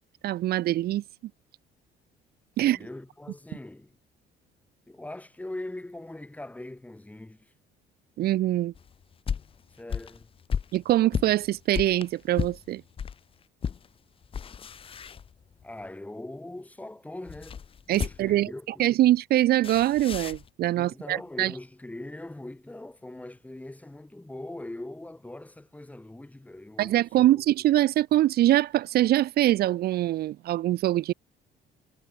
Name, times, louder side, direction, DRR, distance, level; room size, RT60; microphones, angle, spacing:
voice 1, 0.2-1.0 2.6-2.8 8.2-8.7 10.7-12.8 17.9-18.5 18.8-21.5 26.8-31.1, right 14 dB, 65° right, 1.1 m, -23 dB
voice 2, 2.6-4.0 4.9-7.5 9.8-10.3 15.6-17.6 17.9-18.8 20.7-27.3, left 1 dB, 10° left, 4.5 m, -41 dB
sound 1, 8.7-13.2 13.6-13.9 14.2-15.7 17.3-18.5 19.6-20.5, left 7 dB, 35° left, 0.8 m, -34 dB
cardioid pair, 110°, 17 cm